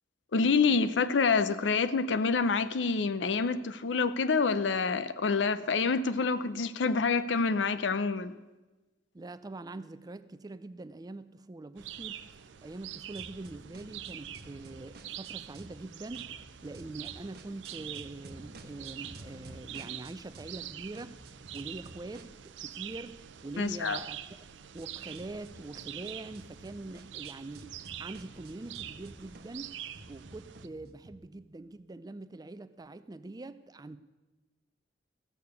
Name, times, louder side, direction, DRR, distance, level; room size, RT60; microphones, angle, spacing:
voice 1, 0.3-8.4 23.6-24.0, left 4 dB, 90° left, 13 dB, 0.6 m, -27 dB
voice 2, 9.1-12.2 12.6-16.3 16.6-21.2 21.5-24.2 24.7-29.8 30.1-34.0, right 2 dB, 20° right, 13 dB, 0.4 m, -44 dB
sound 1, 11.8-30.7, right 11 dB, 90° right, 0.5 m, -45 dB
sound 2, 13.1-15.8 16.1-20.7 20.9-31.1, right 2 dB, 60° right, 0.9 m, -52 dB
15.0 x 6.7 x 6.9 m, 1.2 s
head